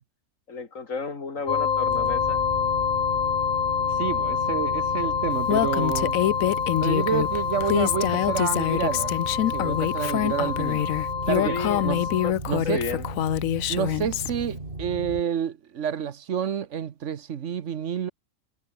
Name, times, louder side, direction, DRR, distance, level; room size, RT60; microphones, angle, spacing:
voice 1, 0.5-2.4 11.4-11.8 12.2-13.1, left 4 dB, 75° left, 2.8 m, -33 dB
sound 1, 1.5-12.3, left 7 dB, 40° left, 0.8 m, -27 dB
sound 2, 1.8-15.2, right 2 dB, 40° right, 4.1 m, -36 dB
voice 2, 3.9-6.2 6.8-9.1 9.5-10.9 11.3-12.0 12.5-12.8 13.7-18.1, right 8 dB, 65° right, 1.3 m, -29 dB
Female speech woman speaking, 5.5-14.3, left 12 dB, 90° left, 1.1 m, -25 dB
omnidirectional pair, 1.4 m